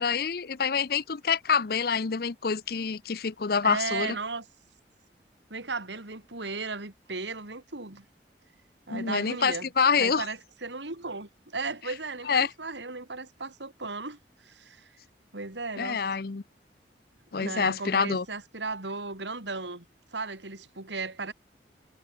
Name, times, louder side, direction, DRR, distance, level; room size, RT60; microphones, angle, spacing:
voice 1, 0.0-4.2 8.9-10.3 12.3-12.5 15.8-16.4 17.3-18.3, left 6 dB, 55° left, 0.6 m, -26 dB
voice 2, 3.6-4.5 5.5-8.1 8.9-9.7 10.0-14.9 15.3-16.0 17.4-19.9 20.1-21.3, right 3 dB, 90° right, 3.6 m, -36 dB
head